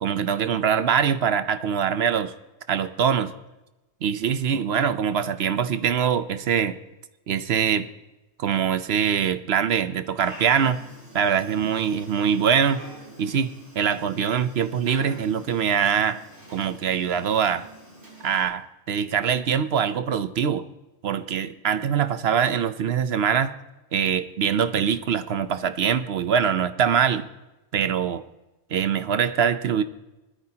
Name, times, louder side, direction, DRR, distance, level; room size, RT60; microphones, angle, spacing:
voice 1, 0.0-2.3 2.7-3.3 4.0-6.8 7.3-7.9 8.4-10.8 11.1-12.8 13.2-16.2 16.5-17.7 18.2-20.6 21.0-23.5 23.9-27.2 27.7-28.2 28.7-29.8, right 7 dB, 70° right, 12 dB, 0.9 m, -23 dB
Dog, 10.2-18.4, right 1 dB, 50° right, 4.8 m, -46 dB
20.0 x 13.5 x 2.9 m, 1.0 s
omnidirectional pair, 1.1 m